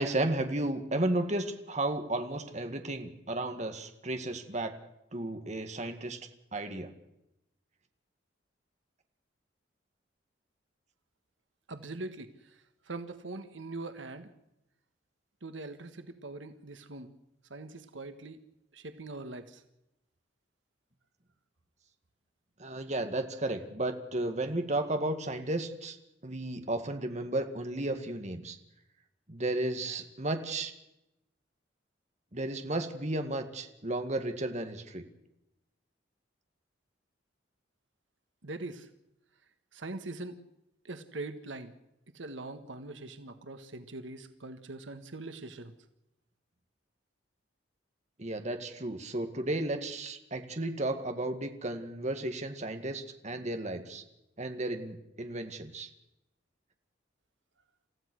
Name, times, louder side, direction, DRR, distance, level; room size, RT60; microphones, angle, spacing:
voice 1, 0.0-4.7 5.1-6.2 6.5-6.9 22.6-26.0 26.2-28.6 29.3-30.7 32.3-35.0 48.2-54.0 54.4-55.9, right 1 dB, 35° right, 6 dB, 2.0 m, -33 dB
voice 2, 11.7-12.6 12.8-14.3 15.4-17.1 17.5-18.4 18.7-19.6 38.4-38.9 39.7-40.4 40.8-41.7 42.1-45.7, right 2 dB, 80° right, 9 dB, 1.5 m, -42 dB
28.5 x 15.0 x 6.3 m, 0.86 s
head